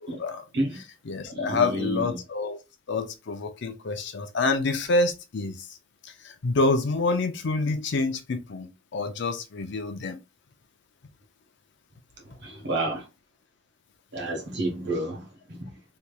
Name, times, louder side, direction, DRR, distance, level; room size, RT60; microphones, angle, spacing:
voice 1, 0.0-0.4 0.8-2.6 2.9-5.6 6.2-10.2, left 3 dB, 60° left, 0.5 m, -27 dB
voice 2, 1.3-2.0 12.4-13.0 14.1-15.6, right 1 dB, 60° right, 1.2 m, -30 dB
3.3 x 2.9 x 2.3 m
head